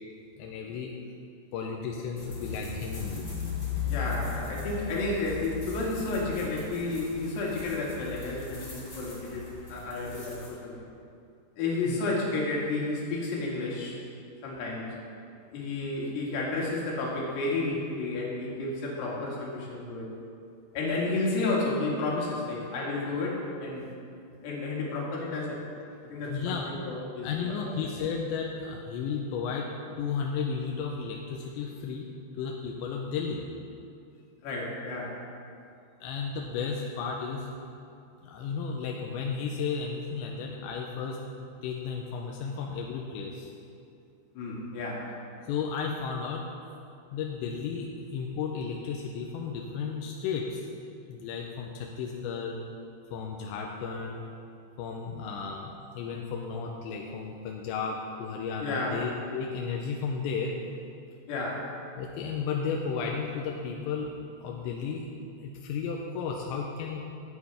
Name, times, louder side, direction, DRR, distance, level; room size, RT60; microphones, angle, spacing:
voice 1, 0.4-0.9 1.5-3.3 11.9-12.0 26.2-26.7 27.2-29.7 30.0-32.1 32.4-33.4 36.0-37.5 38.2-43.5 45.5-46.4 47.1-50.7 51.1-52.6 53.1-54.2 54.8-60.5 62.0-64.1 64.4-65.1 65.4-67.0, left 5 dB, 85° left, 0 dB, 3.0 m, -33 dB
sound 1, 2.2-10.5, left 5 dB, 25° left, 1.7 m, -37 dB
voice 2, 3.9-10.8 11.6-14.0 14.4-15.0 15.5-20.1 20.7-23.9 24.4-25.6 26.0-27.8 34.4-35.2 44.4-45.1 58.6-59.0 61.3-61.7, left 2 dB, 70° left, -4 dB, 3.9 m, -31 dB
16.0 x 9.5 x 3.5 m, 2.5 s
omnidirectional pair, 5.1 m